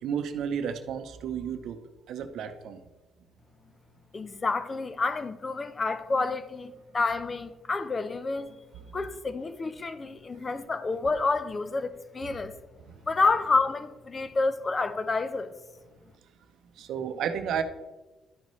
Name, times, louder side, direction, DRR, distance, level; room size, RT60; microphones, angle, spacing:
voice 1, 0.0-1.8 2.1-2.8 12.9-13.0 16.8-17.6, right 8 dB, 80° right, 0.7 m, -32 dB
voice 2, 4.1-8.6 8.9-12.5 13.1-15.5, left 3 dB, 30° left, 0.6 m, -29 dB
12.0 x 5.3 x 3.1 m
cardioid pair, 90°, 0 cm